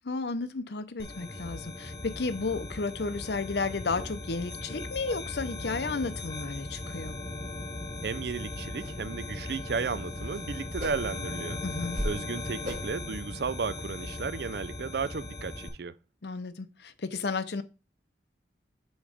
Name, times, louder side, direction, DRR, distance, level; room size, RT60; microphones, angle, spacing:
voice 1, 0.0-7.2 11.6-12.0 16.2-17.6, left 4 dB, 75° left, 0.7 m, -33 dB
sound 1, 1.0-15.7, left 2 dB, 25° left, 1.0 m, -38 dB
voice 2, 8.0-11.6 12.0-15.9, right 5 dB, 65° right, 0.4 m, -34 dB
sound 2, 8.2-8.3 8.8-9.0 9.3-9.6 9.9-11.3 11.7-12.2 12.6-13.0 13.4-13.5, equal, 45° right, 3.2 m, -38 dB
7.2 x 3.1 x 5.0 m
head